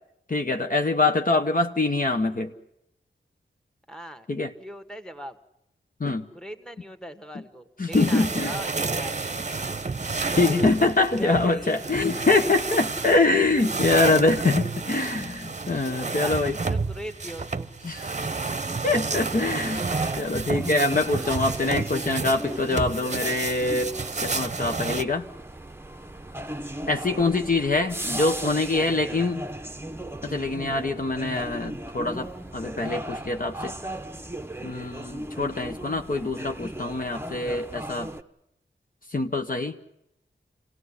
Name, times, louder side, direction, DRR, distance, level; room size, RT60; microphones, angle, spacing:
voice 1, 0.3-2.5 4.3-4.5 6.0-6.3 7.8-8.5 10.4-16.6 17.8-18.1 18.8-19.9 20.2-25.2 26.9-29.4 30.2-33.7 34.6-38.1 39.1-39.8, left 3 dB, 45° left, 5 dB, 1.2 m, -24 dB
voice 2, 3.9-4.3 4.6-5.4 6.3-9.3 11.2-11.8 15.9-17.7 26.7-27.0 36.1-36.3, equal, 5° left, 8 dB, 1.7 m, -40 dB
sound 1, 7.9-25.0, right 4 dB, 40° right, 0.9 m, -30 dB
sound 2, 19.8-38.2, right 1 dB, 10° right, 0.9 m, -37 dB
25.0 x 18.0 x 9.9 m, 0.83 s
wide cardioid pair, 65°, 19 cm